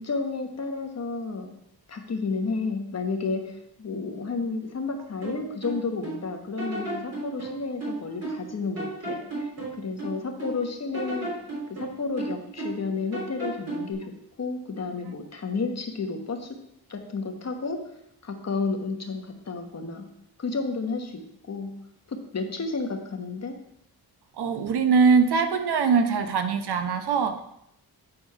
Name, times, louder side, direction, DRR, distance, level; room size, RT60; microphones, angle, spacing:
voice 1, 0.0-1.6 1.9-11.3 11.7-14.0 14.4-16.6 16.9-17.8 18.2-20.1 20.4-21.7 22.1-23.5, left 4 dB, 40° left, 4 dB, 1.2 m, -31 dB
sound 1, 5.2-6.2 6.6-8.5 8.8-10.6 10.9-12.9 13.1-13.9, right 2 dB, 40° right, 3.4 m, -34 dB
voice 2, 24.4-27.4, right 5 dB, 85° right, 8 dB, 0.9 m, -22 dB
8.7 x 4.3 x 5.6 m, 0.78 s
wide cardioid pair, 120°, 38 cm